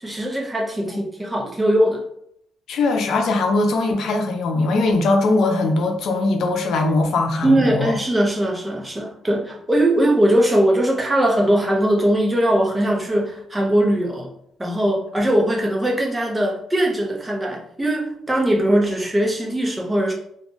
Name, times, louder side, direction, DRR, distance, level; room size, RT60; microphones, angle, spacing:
voice 1, 0.0-2.0 7.4-14.3 14.6-20.1, right 1 dB, 15° right, 0 dB, 0.8 m, -20 dB
voice 2, 2.7-7.9, left 2 dB, 70° left, 4 dB, 0.6 m, -20 dB
2.6 x 2.3 x 3.9 m, 0.70 s
cardioid pair, 90°, 0 cm